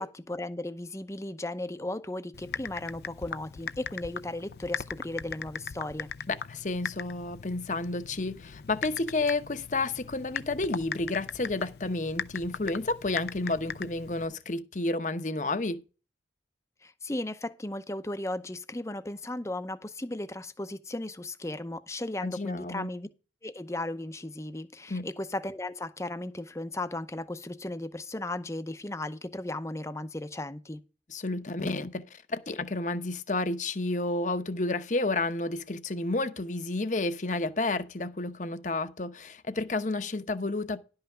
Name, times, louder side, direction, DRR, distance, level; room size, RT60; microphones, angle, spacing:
voice 1, 0.0-6.1 16.8-23.1 23.4-30.8, left 1 dB, 15° left, 0.7 m, -36 dB
Typing, 2.3-14.3, left 6 dB, 60° left, 0.5 m, -40 dB
voice 2, 6.3-15.8 22.2-22.9 24.9-25.1 31.1-40.8, left 2 dB, 45° left, 0.9 m, -31 dB
11.5 x 5.6 x 5.0 m
head